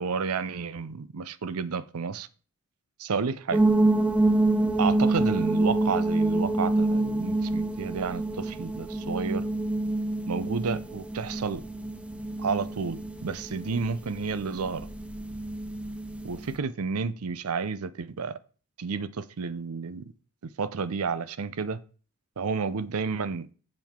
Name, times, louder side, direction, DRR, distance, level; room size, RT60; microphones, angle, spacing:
voice 1, 0.0-2.3 3.0-3.6 4.8-9.4 10.3-11.6 12.4-14.9 16.2-18.4 18.8-20.0 20.6-21.8 22.4-23.5, right 5 dB, 85° right, 0.6 m, -31 dB
sound 1, 3.5-16.6, right 2 dB, 5° right, 0.5 m, -27 dB
7.6 x 7.3 x 3.7 m
head